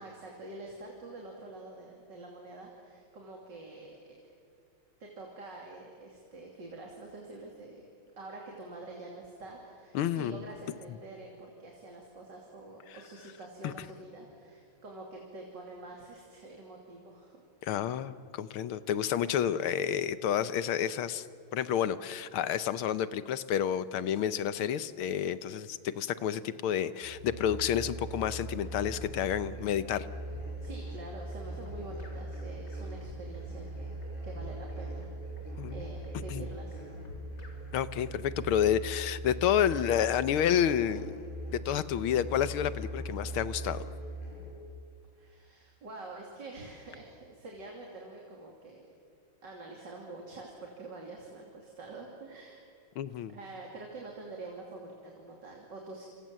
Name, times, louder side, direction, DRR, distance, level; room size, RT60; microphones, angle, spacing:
voice 1, 0.0-4.1 5.0-7.9 8.2-17.4 30.6-35.1 35.4-35.5 35.7-36.8 45.1-48.9 49.4-52.6 53.3-56.1, right 2 dB, 55° right, 0 dB, 3.5 m, -46 dB
voice 2, 9.9-10.4 13.6-13.7 17.6-21.3 21.5-30.1 35.6-35.9 36.3-36.5 37.7-41.2 41.5-43.8 53.0-53.4, left 9 dB, 80° left, 14 dB, 1.7 m, -30 dB
sound 1, 27.0-44.5, right 1 dB, 20° left, 8.1 m, -40 dB
sound 2, 28.6-38.9, left 1 dB, 50° left, 4.3 m, -51 dB
28.5 x 26.0 x 7.6 m, 2.4 s
omnidirectional pair, 2.3 m